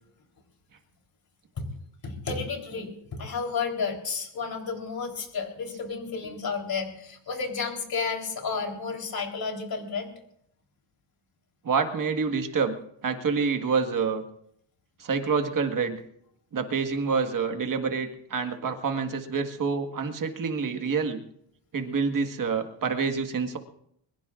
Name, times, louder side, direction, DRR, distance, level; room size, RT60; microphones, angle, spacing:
voice 1, 2.0-10.1, left 5 dB, 45° left, 2 dB, 3.8 m, -32 dB
voice 2, 11.6-12.8 13.0-14.2 15.0-16.0 16.5-21.2 21.7-23.6, right 5 dB, 40° right, 5 dB, 1.7 m, -27 dB
23.0 x 21.5 x 2.5 m, 0.73 s
cardioid pair, 135°, 48 cm